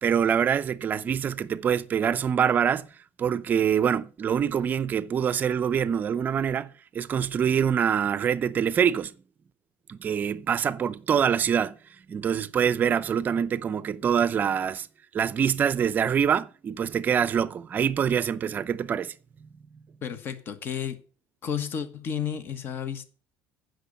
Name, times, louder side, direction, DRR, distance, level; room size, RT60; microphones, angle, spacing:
voice 1, 0.0-2.9 3.2-9.1 9.9-11.8 12.1-14.9 15.1-19.1, right 8 dB, 30° right, 0.6 m, -25 dB
voice 2, 20.0-21.0 21.4-23.0, left 8 dB, 35° left, 1.3 m, -32 dB
15.0 x 6.5 x 6.7 m
cardioid pair, 165°, 6 cm